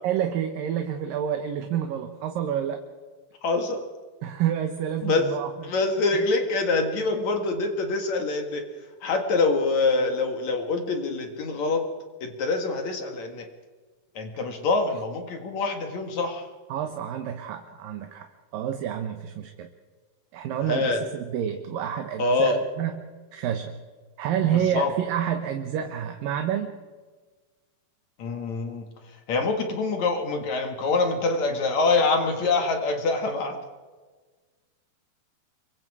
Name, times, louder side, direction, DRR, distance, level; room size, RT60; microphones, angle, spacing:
voice 1, 0.0-2.8 4.2-5.5 6.1-6.3 14.9-15.0 16.7-18.3 18.5-19.7 20.3-23.0 23.3-23.8 24.2-26.7, right 9 dB, 75° right, 6 dB, 2.8 m, -28 dB
voice 2, 3.4-3.8 5.0-5.2 5.6-8.7 9.0-11.9 12.2-13.5 14.2-16.4 20.6-21.0 22.2-22.6 24.5-24.9 28.2-28.9 29.3-33.6, left 3 dB, 55° left, 5 dB, 2.8 m, -25 dB
27.0 x 22.5 x 4.9 m, 1.4 s
omnidirectional pair, 4.2 m